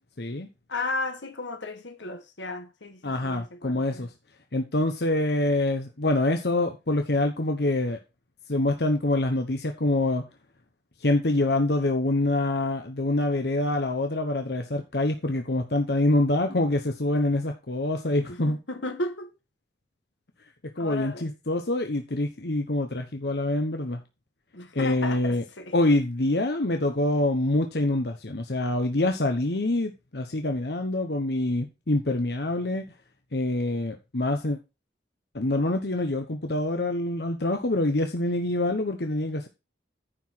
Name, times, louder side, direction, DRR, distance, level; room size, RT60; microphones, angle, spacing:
voice 1, 0.2-0.5 3.0-4.1 4.5-8.0 8.5-10.2 11.0-18.6 20.8-24.0 24.7-25.4 25.7-32.8 33.3-34.6 35.3-39.5, left 2 dB, 65° left, 1.0 m, -25 dB
voice 2, 0.7-4.1 18.3-19.3 20.8-21.3 24.5-25.7, left 2 dB, 90° left, 1.7 m, -34 dB
10.0 x 4.9 x 5.7 m
head